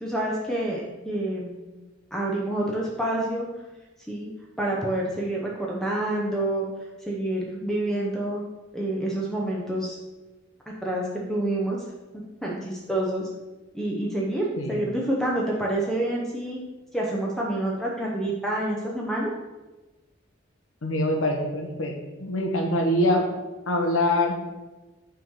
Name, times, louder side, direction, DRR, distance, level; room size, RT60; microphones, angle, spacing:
voice 1, 0.0-1.6 2.1-3.5 4.1-4.3 4.6-6.7 7.1-8.4 8.7-10.0 10.8-11.0 11.3-11.8 12.4-13.3 13.7-16.6 16.9-19.3, right 1 dB, ahead, -3 dB, 0.7 m, -27 dB
voice 2, 20.8-23.3 23.7-24.4, left 1 dB, 90° left, 2 dB, 1.1 m, -24 dB
5.8 x 3.7 x 5.5 m, 1.1 s
head